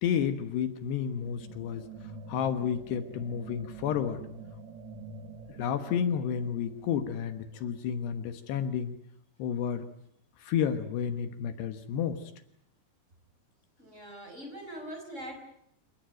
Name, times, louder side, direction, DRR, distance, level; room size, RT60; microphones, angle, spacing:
voice 1, 0.0-4.2 5.5-9.0 9.4-9.9 10.4-12.3, left 8 dB, 75° left, 9 dB, 3.3 m, -31 dB
sound 1, 1.2-7.9, right 4 dB, 55° right, 2.1 m, -47 dB
voice 2, 13.8-15.4, right 1 dB, 15° right, 5 dB, 4.9 m, -42 dB
28.0 x 19.5 x 9.1 m, 0.75 s
omnidirectional pair, 5.1 m